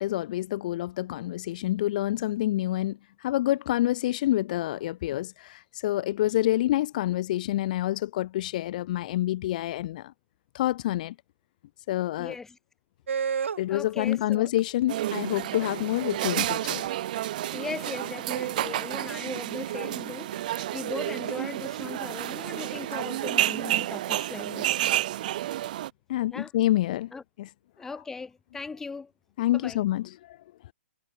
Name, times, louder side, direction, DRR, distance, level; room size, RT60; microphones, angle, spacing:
voice 1, 0.0-10.1 10.5-11.1 11.9-12.4 13.6-16.8 26.1-27.1 27.4-27.5 29.4-30.4, left 14 dB, 40° left, 2.3 m, -27 dB
voice 2, 12.2-12.6 13.7-14.5 17.5-24.9 26.3-26.5 27.1-27.2 27.8-29.1 29.5-29.8, left 4 dB, 5° left, 4.2 m, -39 dB
sound 1, 13.1-13.7 14.1-21.3 22.4-23.8, right 6 dB, 80° right, 6.2 m, -35 dB
sound 2, 14.9-25.9, right 14 dB, 40° right, 1.7 m, -30 dB
hypercardioid pair, 160°, 7 cm